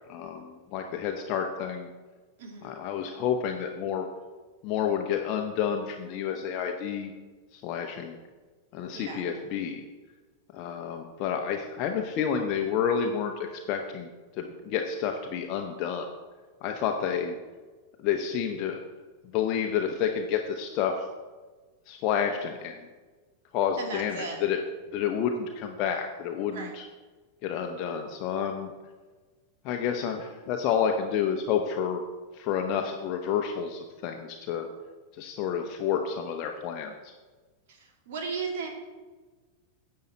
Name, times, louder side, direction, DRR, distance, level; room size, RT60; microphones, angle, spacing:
voice 1, 0.1-1.9 2.6-4.1 4.6-7.1 7.5-8.2 8.7-9.8 10.5-14.1 14.4-16.1 16.6-17.4 18.0-18.8 19.3-20.9 21.9-22.7 23.5-24.6 24.9-26.8 27.4-28.7 29.6-32.0 32.3-34.7 35.2-37.1, left 8 dB, 40° left, 3 dB, 0.8 m, -29 dB
voice 2, 2.4-2.8 8.9-9.2 23.8-24.4 26.5-26.7 37.7-38.7, right 4 dB, 55° right, 2 dB, 2.2 m, -36 dB
10.5 x 7.6 x 4.3 m, 1.4 s
figure-of-eight pair, 90°, 0 cm